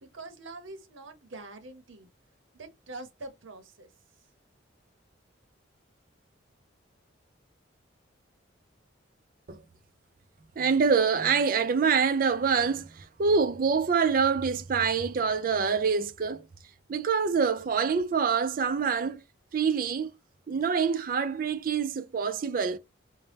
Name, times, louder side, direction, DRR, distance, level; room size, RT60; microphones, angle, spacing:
voice 1, 0.0-2.1 2.5-3.9, right 2 dB, 75° right, 0.8 m, -44 dB
voice 2, 10.6-16.5 16.9-19.2 19.5-20.1 20.5-22.8, right 5 dB, 45° right, 0.4 m, -26 dB
4.0 x 2.1 x 3.3 m
head